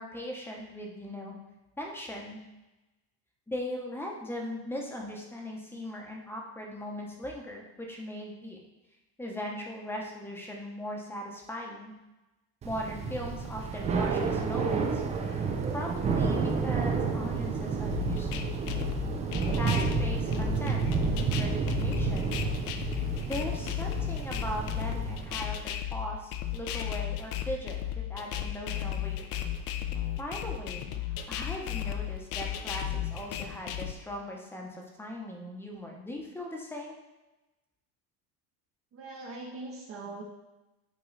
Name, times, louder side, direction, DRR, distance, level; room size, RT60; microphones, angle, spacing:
voice 1, 0.0-1.4 1.8-2.4 3.5-8.7 9.2-11.9 12.6-18.6 19.6-22.4 23.3-29.3 30.2-36.9, equal, 5° left, -1 dB, 0.8 m, -39 dB
Thunder / Rain, 12.6-25.5, right 5 dB, 20° right, 0.3 m, -30 dB
sound 1, 17.9-33.9, left 11 dB, 60° left, 0.6 m, -34 dB
voice 2, 38.9-40.2, right 3 dB, 35° right, -1 dB, 0.7 m, -41 dB
8.8 x 3.0 x 3.9 m, 1.0 s
cardioid pair, 155°, 41 cm